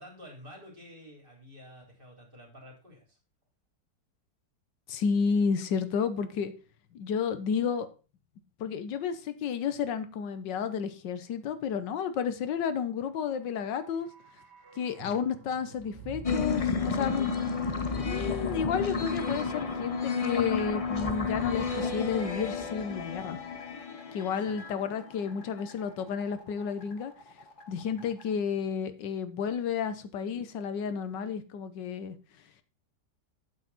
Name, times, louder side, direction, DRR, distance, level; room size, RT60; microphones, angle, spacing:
voice 1, 0.0-3.2 24.2-24.6 27.8-28.1, equal, 30° right, 0 dB, 3.5 m, -51 dB
voice 2, 4.9-6.5 6.9-7.9 8.6-14.1 14.8-17.3 18.0-23.4 24.1-27.1 27.7-32.2, left 6 dB, 90° left, 11 dB, 1.6 m, -31 dB
sound 1, 13.3-21.4 21.7-21.8, right 5 dB, 70° right, 2.5 m, -50 dB
sound 2, 16.2-25.3, left 5 dB, 35° left, 0.5 m, -31 dB
sound 3, 17.0-28.3, left 2 dB, 65° left, 2.0 m, -53 dB
8.8 x 8.2 x 4.1 m, 0.33 s
omnidirectional pair, 1.9 m